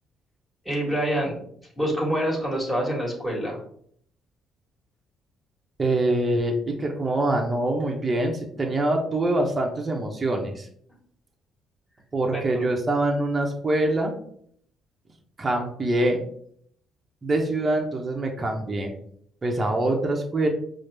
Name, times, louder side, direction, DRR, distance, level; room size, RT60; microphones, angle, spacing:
voice 1, 0.6-1.4 1.8-3.6 12.3-12.7, right 1 dB, 5° right, -3 dB, 1.4 m, -26 dB
voice 2, 5.8-10.7 12.1-14.1 15.4-16.2 17.2-18.9 19.4-20.5, right 1 dB, 30° right, 2 dB, 0.7 m, -24 dB
4.9 x 2.0 x 3.3 m, 0.64 s
cardioid pair, 80°, 0 cm